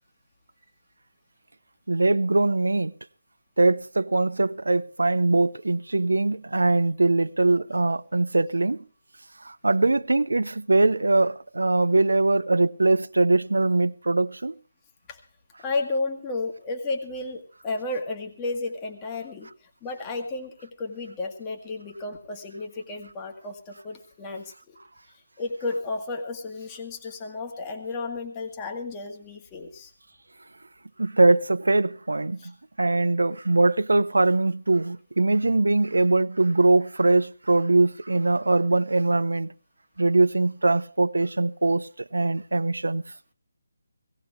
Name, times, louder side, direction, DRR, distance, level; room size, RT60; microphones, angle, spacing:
voice 1, 1.9-2.9 3.6-8.8 9.4-14.6 31.0-39.5 40.0-43.0, right 2 dB, 85° right, 0.7 m, -22 dB
voice 2, 15.6-24.8 25.1-29.9 32.4-32.5, left 3 dB, 15° left, 1.6 m, -33 dB
18.0 x 17.0 x 3.5 m
figure-of-eight pair, 160°, 0 cm